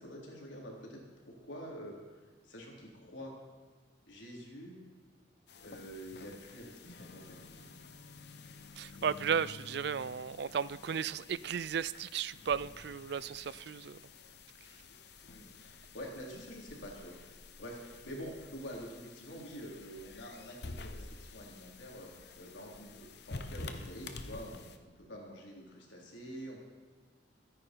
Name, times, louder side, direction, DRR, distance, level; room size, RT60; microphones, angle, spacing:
voice 1, 0.0-2.0 2.4-3.3 4.1-4.8 5.6-7.8 15.3-22.1 22.4-26.6, equal, 85° left, -2 dB, 3.7 m, -47 dB
sound 1, 5.5-24.8, left 3 dB, 60° left, 1.0 m, -50 dB
voice 2, 8.8-14.0, right 7 dB, 60° right, 18 dB, 0.4 m, -35 dB
23.5 x 10.0 x 4.6 m, 1.4 s
head